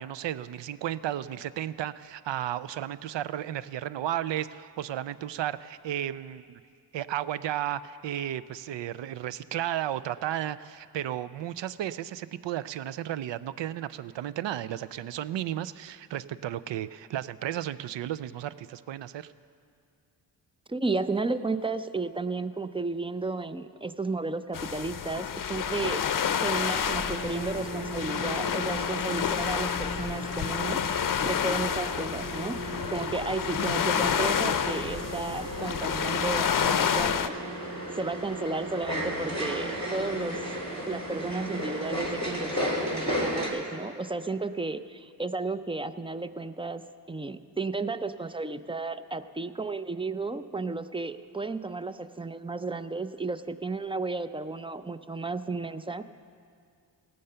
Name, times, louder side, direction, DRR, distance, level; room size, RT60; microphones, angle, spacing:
voice 1, 0.0-6.6 6.9-19.3, right 12 dB, 70° right, 16 dB, 0.5 m, -33 dB
voice 2, 20.7-26.0 26.4-30.8 31.2-37.3 37.9-40.4 40.9-56.0, right 3 dB, 10° right, 12 dB, 0.4 m, -33 dB
sound 1, 24.5-37.3, left 8 dB, 45° left, 0.6 m, -29 dB
sound 2, 27.0-43.5, equal, 45° right, 3.3 m, -35 dB
17.0 x 6.6 x 6.7 m, 2.3 s
cardioid pair, 55°, 46 cm